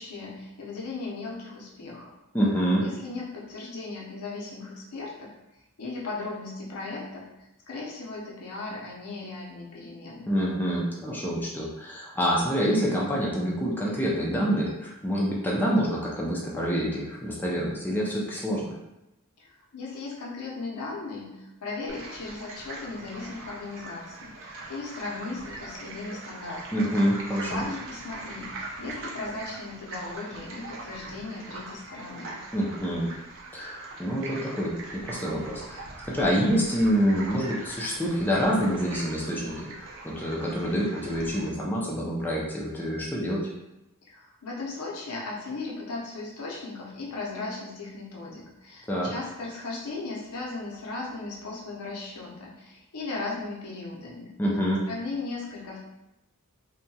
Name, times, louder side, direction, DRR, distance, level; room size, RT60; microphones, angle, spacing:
voice 1, 0.0-2.1 2.8-5.3 5.8-7.3 7.7-10.3 19.4-19.5 19.7-26.9 27.5-32.4 44.1-54.4 54.9-55.8, left 3 dB, 90° left, -3 dB, 0.7 m, -37 dB
voice 2, 2.3-2.8 10.3-18.7 26.7-27.6 32.5-33.1 33.5-35.8 36.1-43.5 48.9-49.1 54.4-54.8, equal, 10° left, -5 dB, 0.4 m, -27 dB
sound 1, 21.9-41.5, right 2 dB, 60° right, 0.5 m, -42 dB
2.7 x 2.3 x 2.7 m, 0.92 s
head